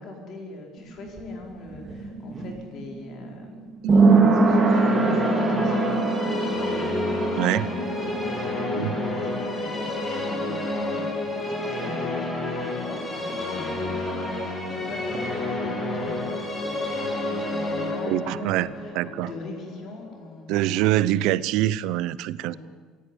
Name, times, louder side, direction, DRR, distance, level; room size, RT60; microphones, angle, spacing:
voice 1, 0.0-3.6 4.1-21.2 22.4-22.6, left 3 dB, 35° left, 4.6 m, -41 dB
sound 1, 0.8-12.3 12.6-12.7, right 3 dB, 15° right, 3.4 m, -24 dB
voice 2, 3.8-4.2 7.4-7.6 8.8-8.9 18.1-19.3 20.5-22.6, right 14 dB, 60° right, 0.8 m, -25 dB
sound 2, 4.4-20.5, left 2 dB, 15° left, 3.5 m, -30 dB
23.0 x 16.5 x 10.0 m
cardioid pair, 175°, 0 cm